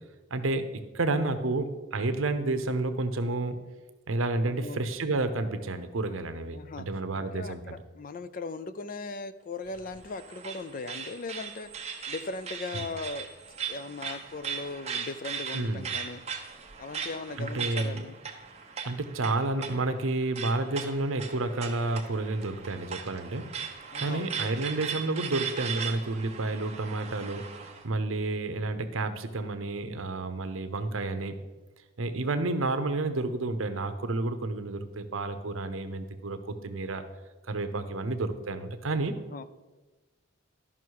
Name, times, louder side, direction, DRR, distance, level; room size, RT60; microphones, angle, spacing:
voice 1, 0.3-3.6 4.1-7.8 15.5-15.8 17.4-18.0 18.8-23.5 24.0-31.3 32.0-37.0 37.5-39.1, right 2 dB, 75° right, 9 dB, 0.8 m, -30 dB
voice 2, 4.4-4.9 6.5-6.9 7.1-11.7 12.1-13.3 13.7-16.2 16.8-18.2 23.9-24.6 39.1-39.4, left 3 dB, 40° left, 13 dB, 0.4 m, -38 dB
sound 1, 9.7-27.8, right 6 dB, 30° right, 1.0 m, -38 dB
12.5 x 5.7 x 4.7 m, 1.2 s
head